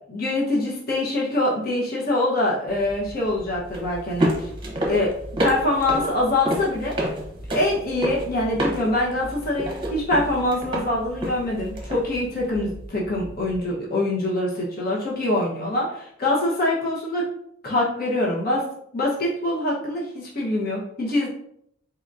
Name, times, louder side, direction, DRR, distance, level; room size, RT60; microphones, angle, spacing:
voice 1, 0.1-4.5 4.8-5.1 5.4-7.1 7.5-17.3 17.6-18.6 18.9-21.3, left 1 dB, 50° left, -4 dB, 1.0 m, -24 dB
sound 1, 2.7-13.6, right 1 dB, 25° right, 0.9 m, -30 dB
4.3 x 3.9 x 2.6 m, 0.71 s
head